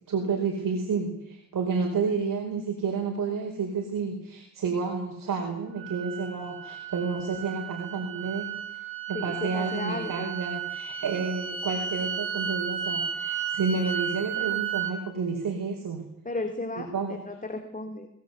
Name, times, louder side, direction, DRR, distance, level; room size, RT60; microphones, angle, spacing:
voice 1, 0.1-8.5 9.1-16.1 16.9-17.2, right 5 dB, 70° right, 1 dB, 4.8 m, -30 dB
sound 1, 5.8-14.9, right 8 dB, 40° right, 5.4 m, -33 dB
voice 2, 9.1-10.3 16.2-18.1, left 2 dB, 25° left, 4 dB, 3.3 m, -34 dB
21.5 x 20.0 x 8.3 m, 0.85 s
cardioid pair, 85°, 34 cm